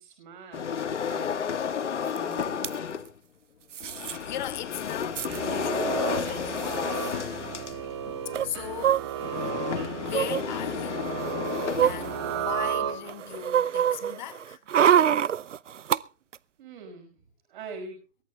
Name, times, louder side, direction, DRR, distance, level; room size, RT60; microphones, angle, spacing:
voice 1, 0.0-1.8 2.2-2.8 16.6-17.1 17.5-18.0, right 4 dB, 40° right, 5.6 m, -44 dB
sound 1, 0.5-3.1 3.8-12.7, left 7 dB, 70° left, 1.6 m, -32 dB
voice 2, 1.8-2.4 4.3-7.1 8.4-9.1 10.0-11.2 11.8-14.6, left 11 dB, 35° left, 2.2 m, -38 dB
sound 2, 2.2-2.3 2.4-2.7 3.7-4.2 4.5-4.6 4.8-5.4 6.2-6.3 6.6-6.8 8.3-9.5 10.1-10.4 11.1-12.7 13.1-16.0 16.3-16.4, right 9 dB, 70° right, 0.7 m, -26 dB
sound 3, 5.2-13.4, right 9 dB, 20° right, 0.8 m, -34 dB
23.0 x 17.5 x 2.4 m
hypercardioid pair, 155°, 38 cm